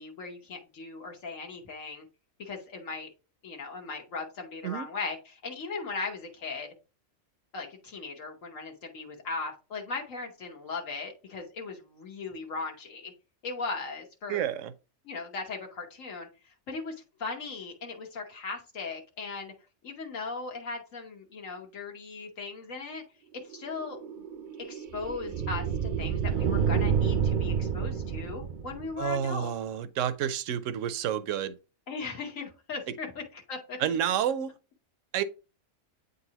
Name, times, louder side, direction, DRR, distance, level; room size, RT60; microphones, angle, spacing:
voice 1, 0.0-2.1 2.4-3.1 3.4-6.7 7.5-13.1 13.4-14.4 15.0-16.3 16.7-16.9 17.2-19.5 19.8-23.0 23.3-24.2 24.6-29.5 31.9-33.8, left 4 dB, 75° left, 1.5 m, -38 dB
voice 2, 14.3-14.7 29.0-31.5 33.8-34.5 35.1-35.2, right 9 dB, 75° right, 0.9 m, -29 dB
sound 1, 23.5-29.1, right 7 dB, 55° right, 0.5 m, -29 dB
8.4 x 4.0 x 2.8 m
omnidirectional pair, 1.4 m